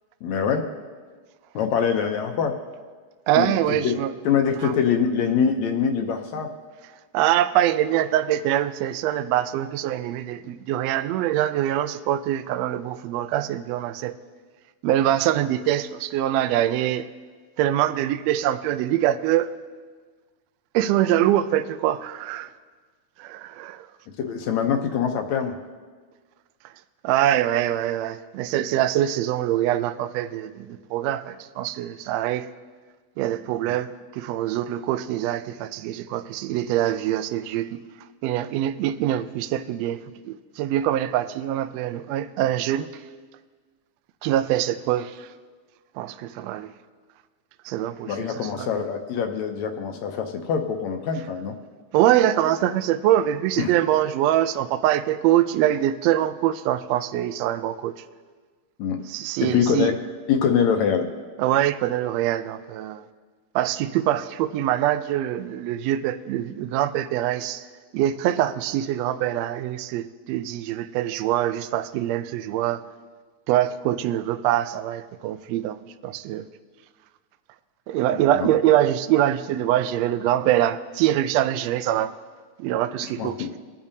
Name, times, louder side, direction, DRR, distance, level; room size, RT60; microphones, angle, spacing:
voice 1, 0.2-0.7 1.6-2.6 3.4-3.6 3.8-3.9 4.3-6.5 24.2-25.6 33.7-33.8 48.1-51.5 53.6-53.7 58.8-59.0 59.4-60.0 60.3-61.1 78.3-78.5 83.2-83.5, left 7 dB, 75° left, 5 dB, 1.9 m, -24 dB
voice 2, 3.3-4.1 4.6-4.7 7.1-14.2 14.8-17.1 17.6-19.5 20.7-22.5 23.2-23.9 27.0-32.5 33.2-37.8 38.2-42.9 44.2-45.3 46.0-46.7 47.6-48.8 51.9-58.0 59.0-59.9 61.4-63.0 63.5-67.6 67.9-72.8 73.5-75.8 76.0-76.4 77.9-82.1 82.6-83.5, right 12 dB, 85° right, 11 dB, 1.5 m, -24 dB
23.0 x 8.7 x 2.7 m, 1.5 s
omnidirectional pair, 3.5 m